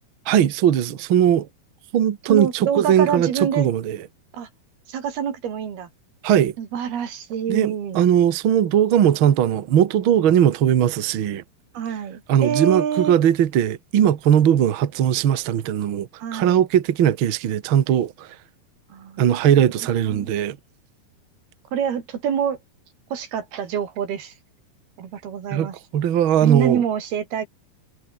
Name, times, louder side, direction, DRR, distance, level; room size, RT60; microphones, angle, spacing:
voice 1, 0.3-1.5 1.9-4.0 6.2-6.5 7.5-11.4 12.3-18.3 19.2-20.6 25.5-26.8, right 10 dB, 60° right, 1.3 m, -19 dB
voice 2, 2.3-3.7 4.3-4.5 4.9-5.9 6.6-8.1 11.7-13.2 16.2-16.6 18.9-19.3 19.6-20.3 21.7-22.6 23.1-24.3 25.0-25.8 26.4-27.5, right 8 dB, 85° right, 5.1 m, -26 dB
omnidirectional pair, 4.3 m